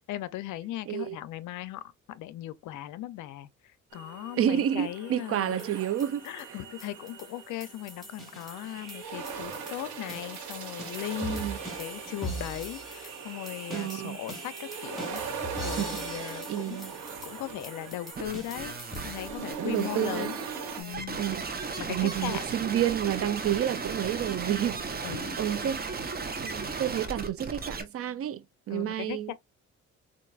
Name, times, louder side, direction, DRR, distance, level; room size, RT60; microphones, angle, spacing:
voice 1, 0.1-1.8 2.1-5.7 6.2-11.4 11.8-15.2 15.6-16.9 17.2-18.8 19.0-20.4 20.8-21.2 21.8-22.4 25.0-25.4 28.7-29.3, left 14 dB, 80° left, 0.5 m, -38 dB
voice 2, 0.9-1.2 4.4-6.6 11.2-11.6 13.7-14.2 15.8-16.9 19.4-20.3 21.1-21.5 21.9-24.8 25.4-25.8 26.2-29.3, right 11 dB, 50° right, 0.5 m, -30 dB
sound 1, 3.9-20.8, right 5 dB, 85° right, 1.2 m, -40 dB
sound 2, 5.6-20.1, right 1 dB, ahead, 1.9 m, -43 dB
sound 3, 18.2-27.8, right 4 dB, 30° right, 0.8 m, -36 dB
4.5 x 2.5 x 2.3 m
cardioid pair, 90°, 30 cm